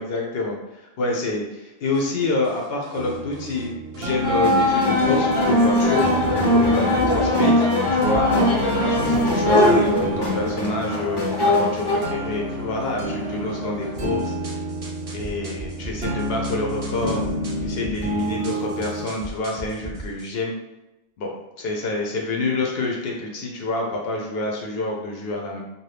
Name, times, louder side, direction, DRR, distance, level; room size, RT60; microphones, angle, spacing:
voice 1, 0.0-6.0 6.5-7.6 7.9-8.3 8.9-14.3 15.1-17.2 17.6-20.5 21.2-21.3 21.6-25.6, left 2 dB, 75° left, 0 dB, 0.8 m, -27 dB
sound 1, 1.9-3.7 3.9-5.7 5.9-20.3, right 2 dB, 40° right, 0.6 m, -38 dB
sound 2, 2.9-19.0, equal, 75° right, 0.8 m, -30 dB
sound 3, 4.2-12.0, left 1 dB, 30° left, 0.5 m, -20 dB
2.7 x 2.3 x 3.2 m, 0.96 s
omnidirectional pair, 1.0 m